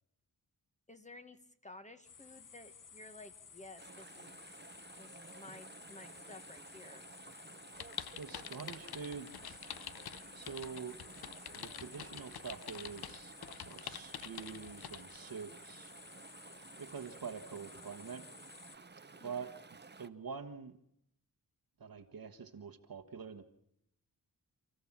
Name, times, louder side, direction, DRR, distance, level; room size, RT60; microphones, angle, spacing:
voice 1, 0.9-4.3 5.0-7.1 19.1-19.4, left 2 dB, 20° left, 8 dB, 1.6 m, -54 dB
sound 1, 2.0-18.8, left 6 dB, 55° left, 1.1 m, -56 dB
Chatter / Stream, 3.8-20.1, right 4 dB, 30° right, 1.0 m, -54 dB
sound 2, 7.8-15.2, left 9 dB, 75° left, 0.8 m, -47 dB
voice 2, 8.2-9.6 10.3-11.0 11.6-15.9 16.8-18.3 19.2-19.5 20.0-20.8 21.8-23.4, right 6 dB, 65° right, 5 dB, 1.5 m, -46 dB
28.5 x 14.0 x 7.4 m, 0.76 s
cardioid pair, 65°, 38 cm